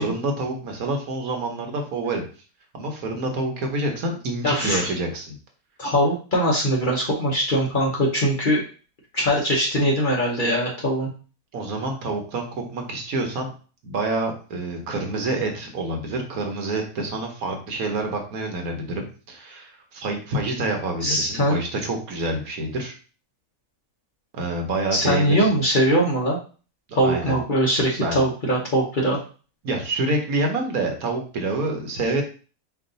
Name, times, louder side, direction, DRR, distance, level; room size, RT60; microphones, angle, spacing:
voice 1, 0.0-2.2 2.7-5.4 11.5-13.5 13.8-22.9 24.3-25.5 26.9-27.4 28.0-28.3 29.6-32.2, right 2 dB, 70° right, 3 dB, 1.4 m, -27 dB
voice 2, 4.4-4.9 5.8-8.6 9.1-11.1 21.0-21.6 24.9-26.4 26.9-29.2, equal, 40° left, -3 dB, 1.0 m, -21 dB
4.6 x 2.6 x 3.9 m, 0.37 s
omnidirectional pair, 1.6 m